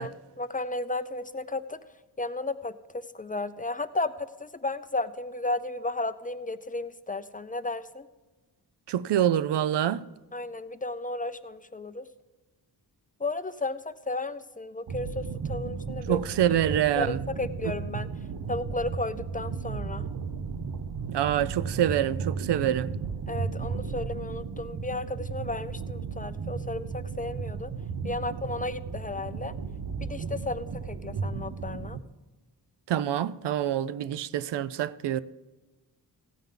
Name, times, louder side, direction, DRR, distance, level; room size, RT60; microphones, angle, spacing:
voice 1, 0.0-1.8 2.2-2.8 3.1-8.1 10.3-12.1 13.2-16.2 16.7-18.1 18.5-20.1 23.3-27.7 28.0-29.5 30.0-32.0, left 2 dB, 20° left, 0.4 m, -33 dB
voice 2, 8.9-10.0 16.1-17.2 21.1-22.9 32.9-35.2, right 10 dB, 90° right, 0.5 m, -26 dB
sound 1, 14.9-32.0, right 5 dB, 55° right, 0.8 m, -35 dB
15.5 x 9.1 x 3.8 m
wide cardioid pair, 115°, 40 cm